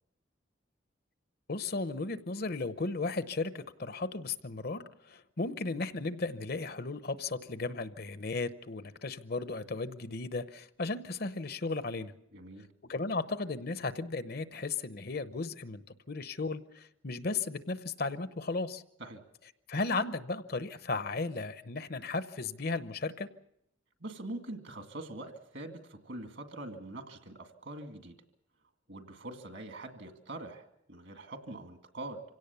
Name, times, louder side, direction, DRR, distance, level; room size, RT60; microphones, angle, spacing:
voice 1, 1.5-12.1 12.9-18.8 19.7-23.3, left 3 dB, 50° left, 12 dB, 0.8 m, -35 dB
voice 2, 12.3-12.7 19.0-19.2 24.0-28.2 28.9-32.2, right 2 dB, 65° right, 6 dB, 2.1 m, -44 dB
26.0 x 17.5 x 7.0 m, 0.78 s
head